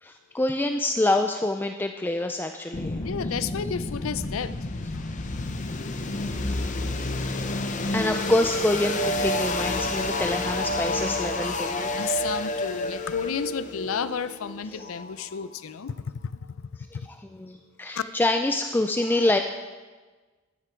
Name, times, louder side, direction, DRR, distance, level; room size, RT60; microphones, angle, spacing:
voice 1, 0.0-3.1 6.0-6.6 7.9-12.0 14.7-14.8 16.9-19.4, left 2 dB, 10° left, 5 dB, 0.3 m, -27 dB
sound 1, 2.7-15.5, left 2 dB, 35° left, 0.7 m, -29 dB
voice 2, 3.0-4.5 4.9-5.0 12.0-16.3 16.6-17.1 18.0-18.1, left 7 dB, 75° left, 14 dB, 0.5 m, -32 dB
13.0 x 9.6 x 4.5 m, 1.3 s
head